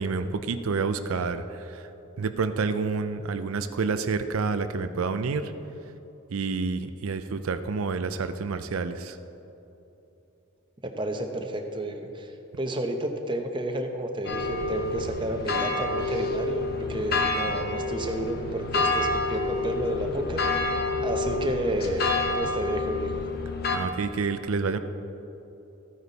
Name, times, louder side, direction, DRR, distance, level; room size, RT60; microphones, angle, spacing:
voice 1, 0.0-1.8 2.2-5.5 6.3-9.2 23.7-24.8, right 4 dB, 85° right, 10 dB, 0.5 m, -28 dB
voice 2, 10.8-23.1, right 1 dB, 25° right, 4 dB, 0.8 m, -31 dB
sound 1, 14.2-23.8, left 3 dB, 45° left, 0.9 m, -28 dB
14.0 x 9.4 x 4.1 m, 3.0 s
head